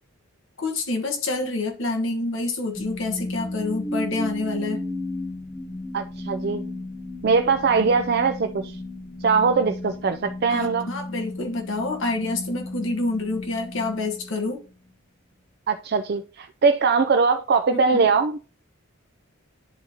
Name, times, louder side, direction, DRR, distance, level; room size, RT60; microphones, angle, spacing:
voice 1, 0.6-4.8 10.5-14.6 17.7-18.1, left 2 dB, 65° left, 1.2 m, -27 dB
sound 1, 2.7-14.9, left 1 dB, 15° left, 1.0 m, -34 dB
voice 2, 5.9-6.6 7.2-8.8 9.2-10.9 15.7-18.4, right 5 dB, 50° right, 0.4 m, -21 dB
10.5 x 4.0 x 2.8 m
head